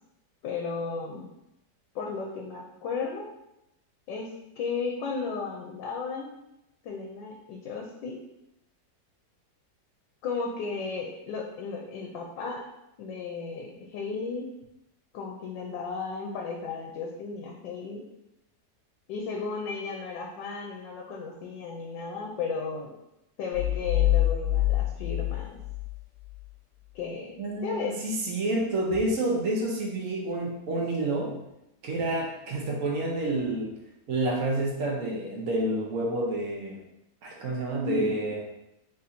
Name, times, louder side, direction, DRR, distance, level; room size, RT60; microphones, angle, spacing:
voice 1, 0.4-1.3 1.9-3.2 4.1-4.3 4.6-6.3 6.8-8.2 10.2-12.6 13.0-14.5 15.1-18.0 19.1-22.9 23.4-25.6 26.9-27.9 37.8-38.1, left 4 dB, 80° left, 0 dB, 1.3 m, -34 dB
sound 1, 23.5-26.4, left 14 dB, 65° left, 0.9 m, -26 dB
voice 2, 27.4-31.3 31.8-33.7 34.1-36.8 37.2-38.4, right 2 dB, 55° right, -1 dB, 1.0 m, -29 dB
3.7 x 2.6 x 4.2 m, 0.86 s
omnidirectional pair, 2.0 m